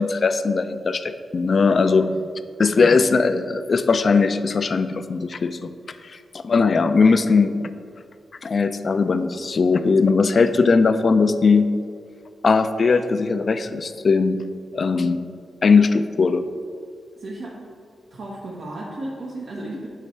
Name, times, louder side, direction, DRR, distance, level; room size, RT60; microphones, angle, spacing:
voice 1, 0.0-2.1 2.6-5.6 6.3-7.6 8.4-11.7 12.4-14.4 14.7-15.2 15.6-16.5, left 4 dB, 55° left, 10 dB, 0.4 m, -19 dB
voice 2, 1.6-2.1 17.2-17.6 18.1-19.9, right 2 dB, 70° right, -5 dB, 1.1 m, -35 dB
8.1 x 3.2 x 5.7 m, 2.3 s
cardioid pair, 60°, 0 cm